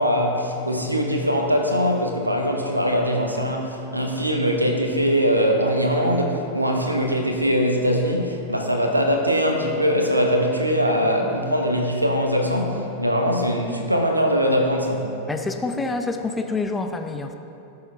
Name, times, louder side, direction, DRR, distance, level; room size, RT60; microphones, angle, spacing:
voice 1, 0.0-15.1, equal, 85° right, 2 dB, 1.1 m, -22 dB
voice 2, 15.3-17.3, left 3 dB, 10° left, 5 dB, 0.7 m, -27 dB
16.5 x 6.7 x 3.5 m, 2.9 s
figure-of-eight pair, 90°, 0 cm